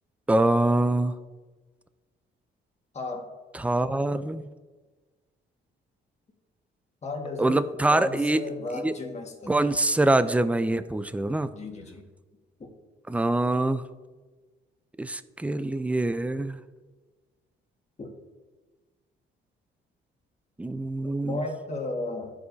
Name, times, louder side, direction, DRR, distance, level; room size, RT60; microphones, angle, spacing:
voice 1, 0.3-1.1 3.5-4.5 7.4-8.4 8.8-8.9 9.5-11.5 13.1-13.8 15.0-16.6 20.6-21.4, right 2 dB, 5° right, 13 dB, 0.4 m, -24 dB
voice 2, 2.9-3.2 7.0-7.6 7.9-9.7 11.5-12.0 12.6-12.7 18.0-18.1 21.3-22.3, left 2 dB, 35° left, 0 dB, 1.6 m, -34 dB
13.0 x 4.9 x 2.7 m, 1.3 s
cardioid pair, 90°, 20 cm